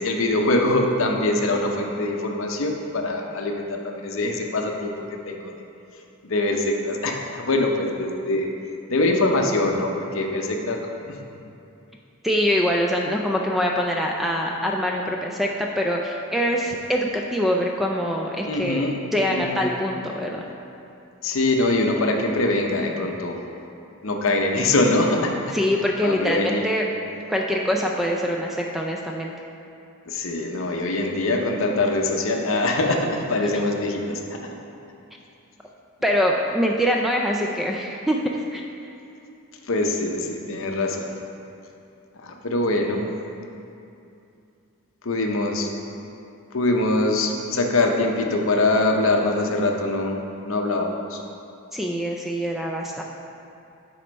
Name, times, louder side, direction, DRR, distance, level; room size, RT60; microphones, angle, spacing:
voice 1, 0.0-5.6 6.3-8.5 8.9-11.3 18.5-19.0 19.3-19.7 21.2-23.4 24.0-25.5 26.0-26.6 30.1-34.4 39.7-41.1 42.2-43.0 45.0-45.7 46.5-51.2, left 2 dB, 60° left, 2 dB, 0.7 m, -23 dB
voice 2, 12.2-18.9 19.1-20.5 25.5-26.9 27.3-29.3 36.0-38.2 38.5-38.6 51.7-53.0, equal, ahead, 0 dB, 0.3 m, -24 dB
7.8 x 4.4 x 5.2 m, 2.7 s
head